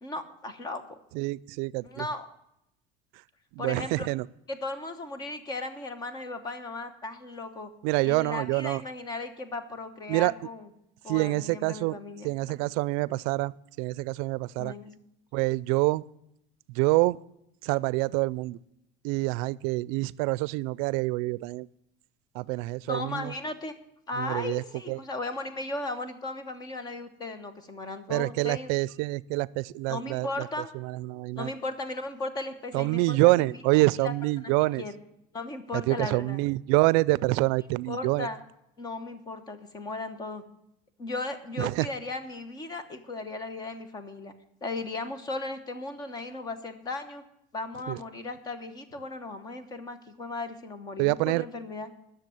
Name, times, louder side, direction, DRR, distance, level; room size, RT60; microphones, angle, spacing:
voice 1, 0.0-1.0 1.8-2.2 3.6-4.1 4.5-7.7 8.0-10.7 11.0-12.5 14.6-14.9 22.9-23.7 24.1-28.7 29.9-30.7 31.3-33.4 34.0-34.1 34.4-34.5 34.8-35.0 35.3-36.4 37.9-38.4 38.8-40.4 41.0-44.3 44.6-47.2 47.5-51.9, left 2 dB, 20° left, 11 dB, 1.0 m, -36 dB
voice 2, 1.1-2.1 3.5-4.3 7.8-8.8 10.1-10.3 11.1-14.7 15.3-16.0 16.7-17.2 17.6-18.6 19.0-21.7 22.3-23.3 24.2-25.0 28.1-30.5 30.7-31.5 32.7-34.8 35.7-38.3 41.6-41.9 47.9-48.0 51.0-51.5, right 22 dB, 75° right, 21 dB, 0.4 m, -26 dB
10.5 x 6.8 x 9.4 m, 0.79 s
cardioid pair, 170°, 18 cm